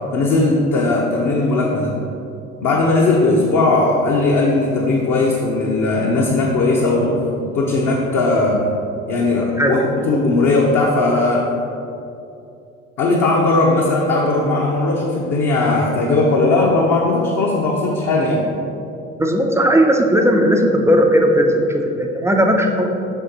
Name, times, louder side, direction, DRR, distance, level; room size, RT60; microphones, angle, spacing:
voice 1, 0.1-2.0 2.6-8.7 9.1-11.5 13.0-18.4, left 2 dB, 40° left, -2 dB, 0.8 m, -18 dB
voice 2, 19.2-22.9, equal, 5° right, 2 dB, 0.4 m, -16 dB
6.3 x 5.4 x 3.0 m, 2.7 s
figure-of-eight pair, 60°, 40 cm